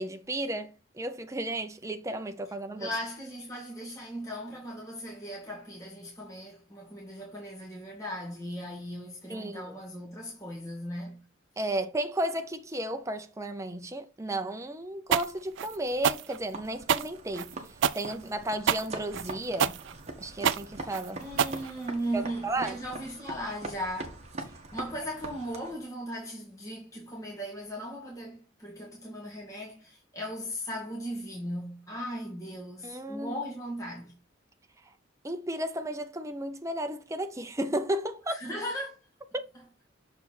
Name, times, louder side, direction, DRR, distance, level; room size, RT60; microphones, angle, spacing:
voice 1, 0.0-2.9 9.3-9.8 11.6-17.6 17.9-19.8 20.2-21.2 22.1-22.8 32.8-33.3 35.2-38.4 39.3-39.4, right 1 dB, 15° right, 0.6 m, -33 dB
voice 2, 2.8-11.2 11.5-11.7 21.2-24.2 24.7-34.2 38.3-39.0, equal, 15° left, 2.0 m, -37 dB
sound 1, 15.1-22.2, right 8 dB, 65° right, 0.4 m, -28 dB
sound 2, 16.5-25.8, right 2 dB, 35° right, 1.4 m, -43 dB
6.8 x 4.3 x 4.3 m
head